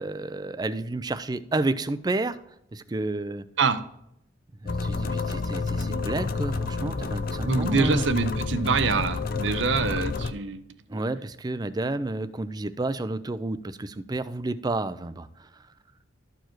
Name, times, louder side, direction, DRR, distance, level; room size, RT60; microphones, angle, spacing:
voice 1, 0.0-2.4 2.7-3.5 4.6-8.0 10.9-15.5, right 2 dB, 20° right, 13 dB, 0.4 m, -30 dB
sound 1, 4.7-10.3, left 3 dB, 50° left, 0.5 m, -29 dB
voice 2, 7.4-10.6, right 4 dB, 75° right, 11 dB, 0.7 m, -25 dB
13.0 x 4.6 x 4.5 m, 0.76 s
head